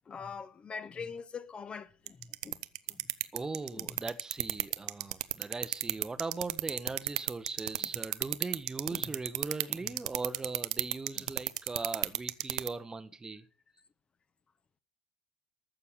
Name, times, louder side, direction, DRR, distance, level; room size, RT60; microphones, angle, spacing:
voice 1, 0.1-2.6 2.9-3.0 3.7-3.9 8.9-9.0 11.2-11.3, left 5 dB, 30° left, 1.1 m, -43 dB
sound 1, 2.1-12.7, right 17 dB, 65° right, 0.6 m, -31 dB
voice 2, 3.3-13.4, right 3 dB, 20° right, 1.0 m, -39 dB
14.0 x 7.0 x 7.3 m
figure-of-eight pair, 60°, 4 cm